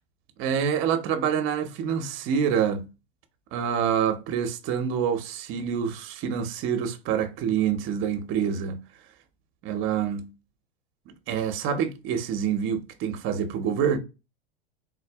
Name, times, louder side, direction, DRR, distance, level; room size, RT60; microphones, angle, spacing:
voice 1, 0.4-2.9 3.5-8.8 9.6-10.3 11.1-14.0, right 8 dB, 40° right, 0.8 m, -26 dB
3.7 x 2.5 x 3.4 m
hypercardioid pair, 110°, 31 cm